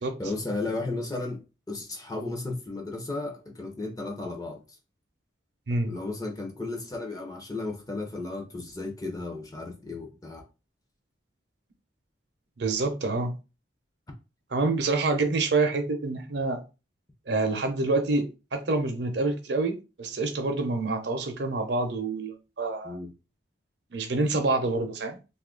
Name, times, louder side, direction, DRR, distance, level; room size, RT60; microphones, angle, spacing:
voice 1, 0.2-4.6 5.8-10.4 22.8-23.1, left 2 dB, 20° left, 0.6 m, -34 dB
voice 2, 12.6-13.3 14.5-16.6 17.3-23.0 23.9-25.2, right 3 dB, 60° right, 0.6 m, -27 dB
2.7 x 2.4 x 3.7 m
head